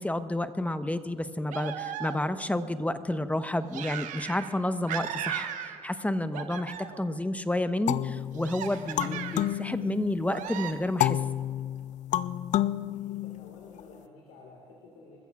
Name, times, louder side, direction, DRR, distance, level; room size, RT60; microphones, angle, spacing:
voice 1, 0.0-11.2, left 1 dB, 10° left, 10 dB, 1.1 m, -30 dB
sound 1, 1.5-2.5 3.7-4.6 4.9-6.0 6.3-7.1 8.3-9.6 10.3-10.7, right 10 dB, 75° right, 1.0 m, -37 dB
sound 2, 7.9-10.4 11.0-13.8, left 13 dB, 65° left, 0.4 m, -30 dB
voice 2, 12.8-15.3, left 3 dB, 85° left, 0 dB, 2.0 m, -52 dB
27.0 x 14.5 x 2.5 m, 2.1 s
hypercardioid pair, 45°, 13 cm